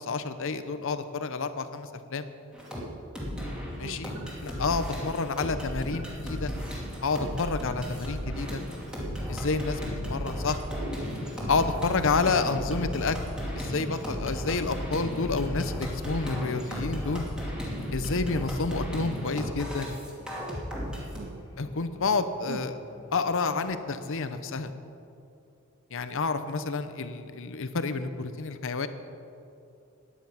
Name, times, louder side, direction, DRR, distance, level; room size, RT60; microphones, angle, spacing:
voice 1, 0.0-2.3 3.8-4.1 4.4-6.5 7.0-8.6 9.3-9.8 10.1-10.6 11.5-13.2 13.5-17.2 17.9-19.9 21.6-22.8 23.1-24.7 25.9-28.9, left 4 dB, 65° left, 11 dB, 0.8 m, -29 dB
sound 1, 2.5-2.8 3.1-21.2, equal, 5° right, 2.7 m, -34 dB
voice 2, 3.8-4.0 21.1-21.4 22.5-22.6, right 5 dB, 55° right, 16 dB, 0.4 m, -41 dB
sound 2, 5.7-23.2, left 1 dB, 20° left, 1.4 m, -51 dB
14.5 x 10.0 x 5.8 m, 2.7 s
head